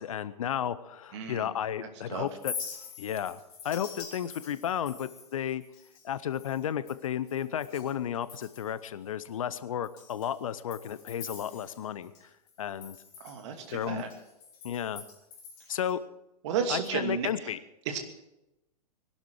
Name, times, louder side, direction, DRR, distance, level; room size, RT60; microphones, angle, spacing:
voice 1, 0.0-2.5 3.0-3.4 3.6-5.6 6.0-12.3 12.6-13.0 13.7-14.0 14.6-15.0 15.7-16.0 16.7-17.6, left 9 dB, 60° left, 16 dB, 0.8 m, -33 dB
voice 2, 1.1-1.5 1.8-2.3 13.2-14.1 15.7-15.8 16.4-17.5 17.9-18.0, right 7 dB, 45° right, 5 dB, 2.6 m, -33 dB
Chink clink, 2.3-7.9 8.2-8.8 9.2-9.3 9.8-12.2 12.5-15.9, left 6 dB, 40° left, 3.7 m, -45 dB
21.0 x 12.0 x 4.8 m, 0.90 s
figure-of-eight pair, 105°, 20 cm